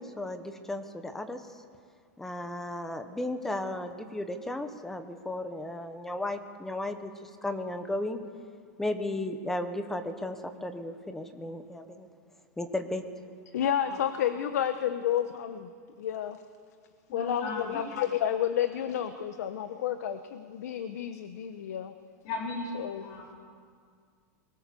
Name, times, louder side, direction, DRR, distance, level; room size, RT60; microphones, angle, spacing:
voice 1, 0.0-1.4 2.2-8.2 8.8-12.1 12.6-13.0, left 1 dB, 5° left, 8 dB, 1.0 m, -35 dB
voice 2, 13.5-15.7 16.0-16.4 17.1-21.9 22.7-23.1, left 10 dB, 65° left, 9 dB, 1.2 m, -30 dB
voice 3, 17.1-17.8 22.2-22.7 23.0-23.3, left 3 dB, 35° left, -2 dB, 4.1 m, -36 dB
23.5 x 22.0 x 7.0 m, 2.1 s
supercardioid pair, 175°, 9 cm